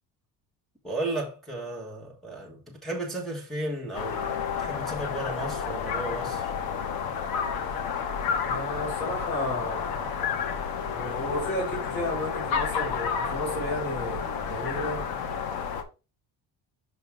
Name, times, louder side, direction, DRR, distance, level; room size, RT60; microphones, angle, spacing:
voice 1, 0.8-6.5, right 1 dB, ahead, 1.4 m, -34 dB
sound 1, 3.9-15.8, left 6 dB, 75° left, 1.2 m, -30 dB
voice 2, 8.4-10.1 10.9-15.1, left 1 dB, 30° left, 4.1 m, -33 dB
6.2 x 5.2 x 3.4 m
cardioid pair, 160°, 37 cm